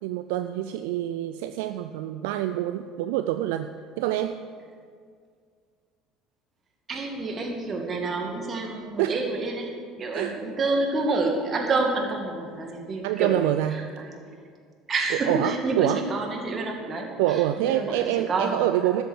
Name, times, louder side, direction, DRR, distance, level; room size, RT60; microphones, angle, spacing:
voice 1, 0.0-3.7 3.9-4.4 9.0-9.2 10.1-10.4 13.0-13.9 15.3-16.0 17.2-19.0, right 13 dB, 70° right, 10 dB, 0.4 m, -26 dB
voice 2, 6.9-9.7 10.0-14.2 14.9-18.6, right 3 dB, 40° right, 2 dB, 2.2 m, -28 dB
12.5 x 8.1 x 6.4 m, 2.1 s
figure-of-eight pair, 60°, 0 cm